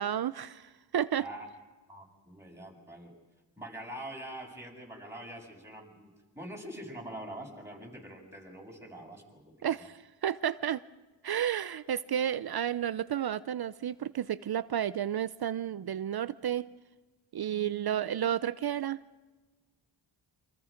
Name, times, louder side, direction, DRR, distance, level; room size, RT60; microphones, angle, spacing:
voice 1, 0.0-1.2 9.6-10.8 11.2-16.7 17.3-19.0, right 10 dB, 55° right, 15 dB, 0.6 m, -32 dB
voice 2, 1.9-3.1 3.6-9.8, right 1 dB, 5° right, -2 dB, 7.0 m, -44 dB
28.0 x 25.5 x 5.1 m, 1.3 s
cardioid pair, 85°, 45 cm